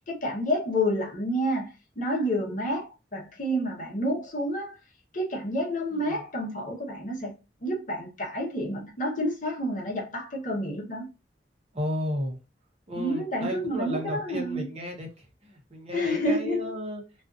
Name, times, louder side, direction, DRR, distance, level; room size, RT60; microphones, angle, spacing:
voice 1, 0.1-4.8 5.1-7.3 7.6-11.1 13.0-14.7 15.9-16.7, equal, 50° left, 0.8 m, -29 dB
voice 2, 5.9-6.2 11.7-12.4 12.9-17.0, equal, 35° right, 0.8 m, -34 dB
2.5 x 2.4 x 2.4 m
head